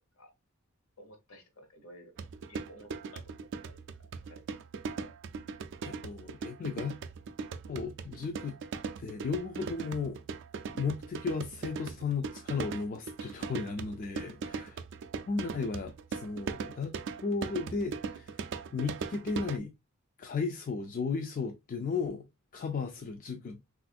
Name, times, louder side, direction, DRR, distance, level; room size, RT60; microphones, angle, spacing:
voice 1, 1.0-2.1 2.5-4.5 5.0-5.1 14.7-14.8, equal, 70° left, 1.0 m, -54 dB
sound 1, 2.2-19.6, right 5 dB, 55° right, 0.3 m, -40 dB
voice 2, 5.9-7.0 7.7-8.6 9.0-10.2 10.7-14.8 15.3-17.0 17.2-18.4 18.7-19.7 20.2-22.3 22.5-23.6, left 4 dB, 40° left, 0.3 m, -35 dB
3.4 x 2.5 x 2.4 m
head